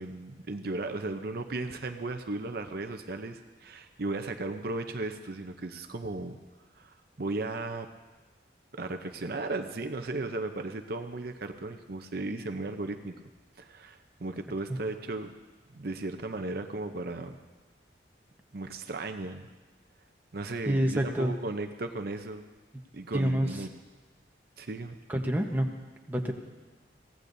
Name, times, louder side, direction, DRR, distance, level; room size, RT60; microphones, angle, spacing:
voice 1, 0.0-6.4 6.8-7.9 8.7-13.1 13.6-15.3 15.7-17.4 18.5-19.5 20.3-22.4 22.9-23.7 24.6-25.0, right 2 dB, 55° right, 6 dB, 0.7 m, -36 dB
voice 2, 20.6-21.3 23.1-23.5 25.1-25.7 26.1-26.3, right 1 dB, 10° right, 1 dB, 1.0 m, -27 dB
23.5 x 16.5 x 2.7 m, 1.3 s
head